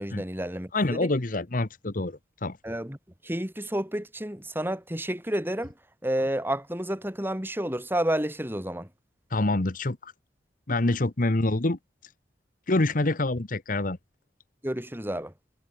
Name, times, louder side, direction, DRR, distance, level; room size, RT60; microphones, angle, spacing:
voice 1, 0.0-1.1 2.6-3.0 3.2-5.7 6.0-8.9 14.6-15.3, right 1 dB, 15° right, 6.0 m, -30 dB
voice 2, 0.7-2.6 9.3-10.1 10.7-11.8 12.7-14.0, left 2 dB, 50° left, 1.2 m, -26 dB
head